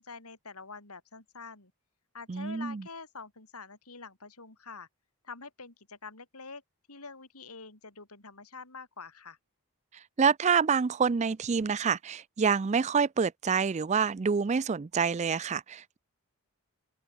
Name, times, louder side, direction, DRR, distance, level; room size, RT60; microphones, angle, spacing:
voice 1, 0.0-1.7 2.1-4.9 5.2-6.6 6.9-9.4, left 4 dB, 85° left, 5.2 m, -46 dB
voice 2, 2.3-2.8 10.2-16.0, right 6 dB, 30° right, 0.4 m, -27 dB
open air
head